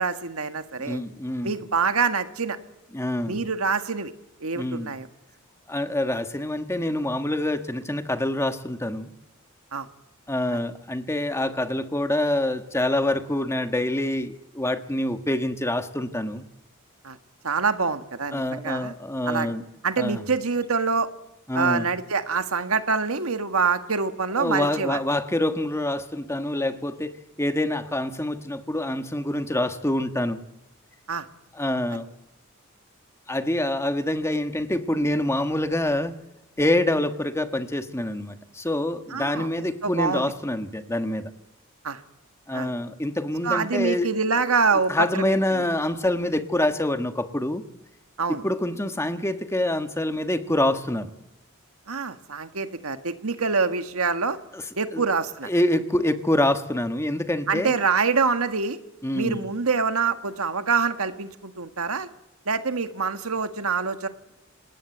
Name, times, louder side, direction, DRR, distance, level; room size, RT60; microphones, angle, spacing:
voice 1, 0.0-1.0 1.4-2.6 3.3-4.1 4.4-5.1 9.7-9.9 10.5-10.6 17.0-17.2 17.4-18.9 19.2-19.5 19.8-21.1 21.5-25.0 31.1-31.3 31.9-32.0 39.1-39.5 39.8-40.2 41.8-42.0 42.5-42.7 43.4-45.6 48.2-48.4 51.9-54.4 54.8-55.5 57.5-58.8 59.1-62.1 62.4-64.1, right 5 dB, 90° right, 9 dB, 1.6 m, -25 dB
voice 2, 0.8-1.6 2.9-3.4 4.5-4.9 5.7-9.1 10.3-16.4 18.3-19.6 20.0-20.2 21.5-21.9 24.4-27.1 27.4-30.4 31.5-32.1 33.3-36.2 36.6-41.3 42.5-44.1 44.9-47.6 48.4-51.1 54.5-54.6 54.9-55.0 55.4-57.7 59.0-59.4, left 1 dB, 15° left, 8 dB, 1.4 m, -26 dB
27.0 x 19.5 x 8.0 m, 0.93 s
head